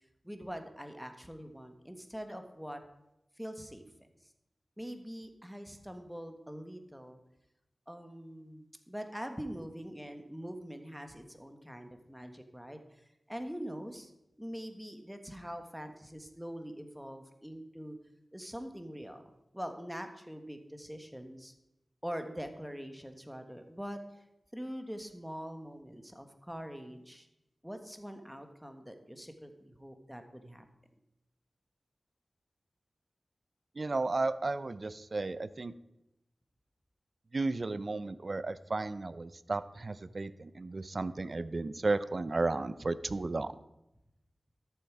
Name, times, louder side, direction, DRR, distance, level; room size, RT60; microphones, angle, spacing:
voice 1, 0.2-2.8 3.4-3.8 4.8-7.2 7.9-14.1 14.4-18.0 18.3-19.2 19.5-21.5 22.0-24.2 24.5-27.3 27.6-30.7, equal, 5° right, 6 dB, 1.5 m, -43 dB
voice 2, 33.8-35.7 37.3-43.5, right 3 dB, 55° right, 15 dB, 0.6 m, -33 dB
13.0 x 7.1 x 4.8 m, 0.88 s
cardioid pair, 45°, 0 cm